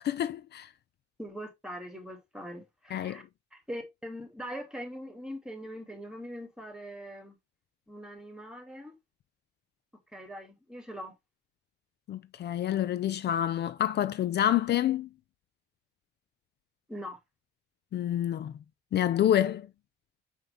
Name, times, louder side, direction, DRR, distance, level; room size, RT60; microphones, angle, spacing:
voice 1, 0.0-0.7 2.9-3.2 12.1-15.1 17.9-18.5 18.9-19.7, left 11 dB, 55° left, 0.5 m, -27 dB
voice 2, 1.2-3.2 3.5-7.4 7.9-9.0 10.1-11.2 16.9-17.2, equal, 5° right, 2.5 m, -42 dB
5.6 x 5.6 x 3.5 m
cardioid pair, 90°, 20 cm